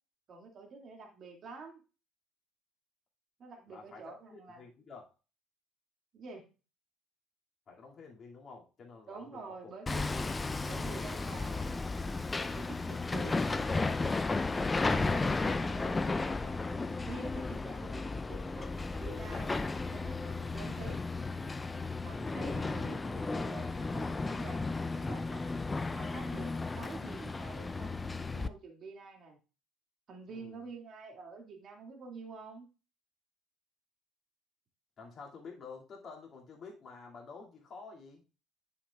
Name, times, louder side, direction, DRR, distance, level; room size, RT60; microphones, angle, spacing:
voice 1, 0.3-1.8 3.4-4.6 6.1-6.5 9.1-10.3 10.7-13.4 14.8-19.5 19.9-21.0 22.0-24.7 25.0-29.4 30.1-32.7, right 4 dB, 45° right, 2 dB, 2.2 m, -48 dB
voice 2, 3.7-4.0 4.3-5.1 7.7-9.7 30.3-30.7 35.0-38.2, left 4 dB, 45° left, -1 dB, 2.3 m, -50 dB
Hammer, 9.9-28.5, left 3 dB, 20° left, 0.5 m, -34 dB
10.0 x 5.9 x 2.4 m, 0.33 s
hypercardioid pair, 55°, 0 cm